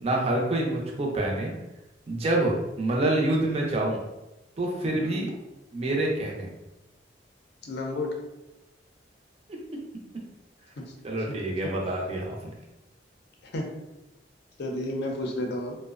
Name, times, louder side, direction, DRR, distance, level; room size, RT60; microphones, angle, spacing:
voice 1, 0.0-1.5 2.1-4.0 4.6-5.3 5.7-6.5 9.5-9.6 11.0-12.5, right 1 dB, 35° right, -1 dB, 0.5 m, -27 dB
voice 2, 7.6-8.2 11.3-11.4 13.4-13.7 14.6-15.8, left 1 dB, 65° left, 1 dB, 0.5 m, -31 dB
2.5 x 2.1 x 2.4 m, 0.97 s
head